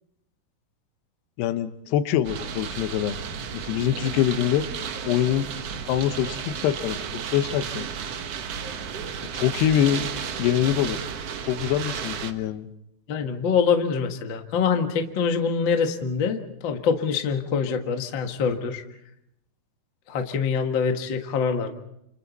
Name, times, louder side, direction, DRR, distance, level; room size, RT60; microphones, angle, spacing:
voice 1, 1.4-3.2 3.5-4.7 5.1-5.5 5.8-7.9 9.3-10.1 10.4-11.0 11.5-12.7, left 11 dB, 80° left, 11 dB, 3.0 m, -24 dB
sound 1, 2.2-12.3, right 7 dB, 90° right, 1.3 m, -33 dB
voice 2, 13.1-18.8 20.1-21.7, left 6 dB, 60° left, 4 dB, 1.2 m, -25 dB
29.0 x 28.0 x 4.1 m, 0.78 s
omnidirectional pair, 4.7 m